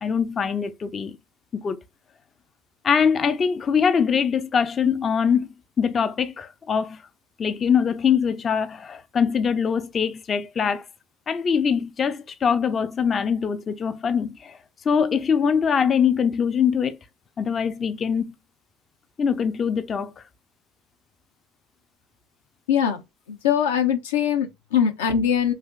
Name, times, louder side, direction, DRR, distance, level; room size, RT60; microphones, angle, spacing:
voice 1, 0.0-1.2 1.5-1.8 2.8-5.5 5.8-7.0 7.4-10.8 11.3-14.6 14.9-17.0 17.4-18.3 19.2-20.1, left 7 dB, 35° left, 0.3 m, -23 dB
voice 2, 22.7-23.0 23.3-25.5, left 8 dB, 85° left, 0.6 m, -22 dB
3.2 x 2.6 x 2.3 m
hypercardioid pair, 75°, 0 cm